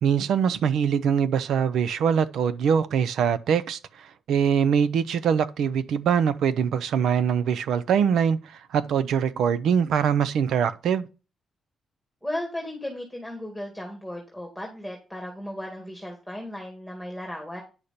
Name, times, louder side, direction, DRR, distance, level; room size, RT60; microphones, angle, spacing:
voice 1, 0.0-11.1, right 7 dB, 85° right, 0.6 m, -23 dB
voice 2, 12.2-17.6, left 1 dB, ahead, 2.4 m, -35 dB
9.9 x 6.6 x 4.3 m
cardioid pair, 100°, 0 cm